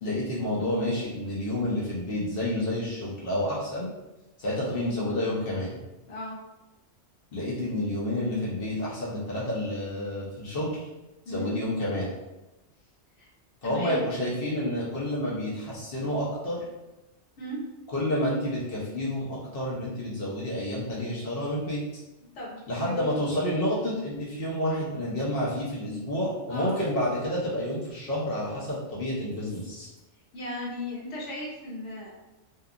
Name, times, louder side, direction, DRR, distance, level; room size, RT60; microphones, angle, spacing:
voice 1, 0.0-3.9 4.4-5.8 7.3-10.9 11.3-12.1 13.6-16.6 17.9-21.8 22.7-29.9, left 1 dB, 60° left, -6 dB, 0.8 m, -29 dB
voice 2, 13.6-14.0 17.4-17.6 22.3-23.1 26.5-26.8 30.3-32.1, left 1 dB, 85° left, -5 dB, 1.2 m, -36 dB
2.7 x 2.3 x 2.4 m, 1.0 s
omnidirectional pair, 1.2 m